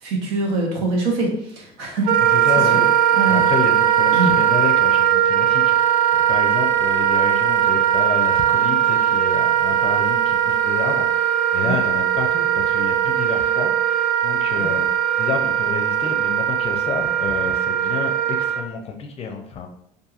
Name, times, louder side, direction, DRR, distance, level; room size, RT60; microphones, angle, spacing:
voice 1, 0.0-2.4 2.7-2.8 3.1-3.4 4.1-4.3 11.6-11.8 14.6-14.7, right 3 dB, 90° right, 0 dB, 0.9 m, -24 dB
Wind instrument woodwind instrument, 2.1-18.6, right 10 dB, 65° right, 0.4 m, -19 dB
voice 2, 2.3-2.8 3.3-5.9 6.1-13.9 14.2-19.7, left 5 dB, 35° left, 4 dB, 0.5 m, -29 dB
2.8 x 2.5 x 2.4 m, 0.73 s
cardioid pair, 120°, 17 cm